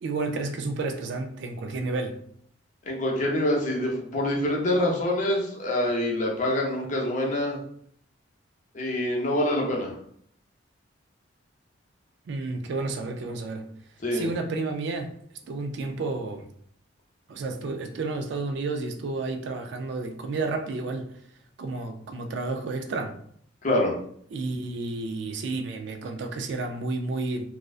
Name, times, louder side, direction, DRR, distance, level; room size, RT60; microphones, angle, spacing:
voice 1, 0.0-2.2 12.3-13.7 14.1-15.1 15.5-16.5 17.3-21.1 21.6-23.1 24.3-27.5, right 3 dB, 65° right, 5 dB, 0.3 m, -31 dB
voice 2, 2.9-7.6 8.7-9.9 14.0-14.3 23.6-23.9, left 1 dB, 40° left, -1 dB, 0.5 m, -25 dB
2.5 x 2.1 x 2.3 m, 0.64 s
head